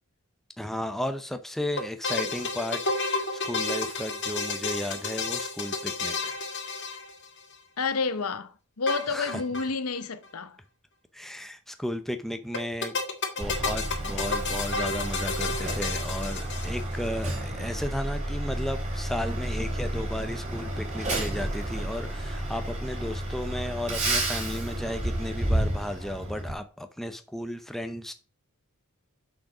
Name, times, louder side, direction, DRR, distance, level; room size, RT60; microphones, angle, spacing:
voice 1, 0.6-6.4 9.1-9.4 11.1-13.0 13.4-28.1, left 1 dB, ahead, 0.6 m, -34 dB
sound 1, 1.8-7.5 8.9-9.7 10.0-10.1 10.2-10.3 12.5-17.1, left 3 dB, 55° left, 1.6 m, -31 dB
voice 2, 7.8-10.6, left 4 dB, 85° left, 0.8 m, -30 dB
Truck, 13.4-26.5, right 1 dB, 35° right, 3.0 m, -31 dB
6.5 x 6.5 x 4.9 m
head